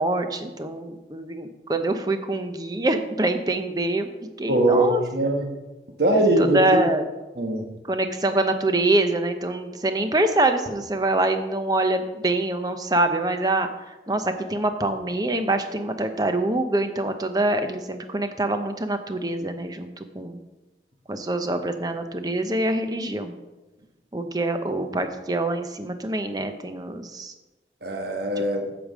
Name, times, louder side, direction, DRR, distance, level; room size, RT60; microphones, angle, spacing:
voice 1, 0.0-5.0 6.1-7.1 7.8-20.4 21.1-23.3 24.1-27.3 28.4-28.5, right 2 dB, 20° right, 7 dB, 0.7 m, -25 dB
voice 2, 4.5-5.5 6.0-6.6 7.4-7.7 27.8-28.6, right 1 dB, 65° right, 2 dB, 1.4 m, -21 dB
8.5 x 5.1 x 7.5 m, 1.1 s
head